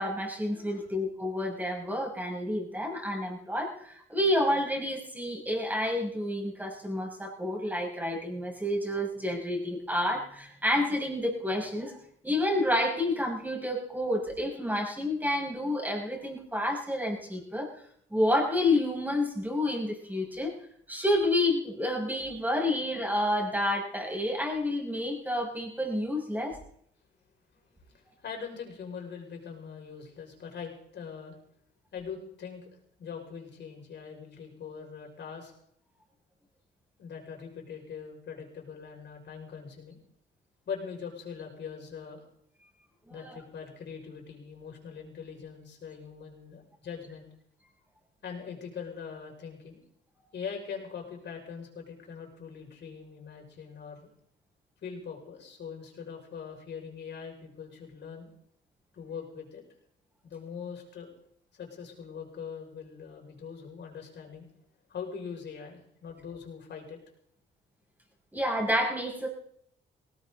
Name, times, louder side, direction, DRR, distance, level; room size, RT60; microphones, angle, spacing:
voice 1, 0.0-11.9 12.2-17.7 18.1-20.6 20.9-26.6 43.1-43.4 68.3-69.3, left 1 dB, 10° right, -1 dB, 7.0 m, -29 dB
voice 2, 28.2-31.4 31.9-32.7 33.0-35.5 37.0-40.0 40.7-42.3 43.1-47.3 48.2-49.8 50.3-54.1 54.8-58.3 58.9-59.6 60.2-61.1 61.6-64.5 64.9-67.0, left 6 dB, 60° left, 1 dB, 6.2 m, -42 dB
19.0 x 18.0 x 4.0 m, 0.68 s
cardioid pair, 90°, 20 cm